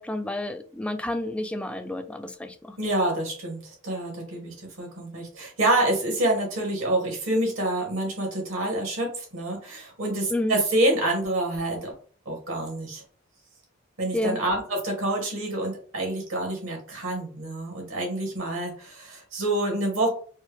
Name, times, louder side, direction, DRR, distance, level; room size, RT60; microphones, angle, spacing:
voice 1, 0.0-2.8 10.3-10.6 14.1-14.4, left 1 dB, 5° left, 6 dB, 0.3 m, -30 dB
voice 2, 2.8-11.9 12.3-13.0 14.0-20.1, right 1 dB, 75° right, 0 dB, 1.7 m, -27 dB
4.4 x 2.0 x 3.2 m, 0.43 s
head